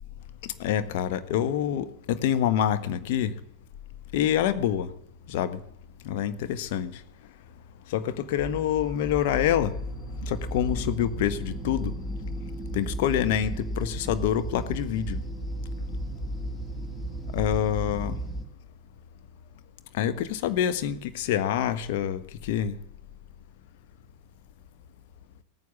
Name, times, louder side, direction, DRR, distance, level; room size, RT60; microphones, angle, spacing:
voice 1, 0.6-3.3 4.1-4.9 5.3-5.6 6.0-7.0 7.9-9.7 10.2-11.9 12.7-15.2 17.3-18.2 19.9-22.8, left 10 dB, 50° left, 1.2 m, -26 dB
sound 1, 8.4-18.5, equal, 15° left, 2.2 m, -34 dB
17.5 x 9.5 x 7.3 m
figure-of-eight pair, 90°, 0 cm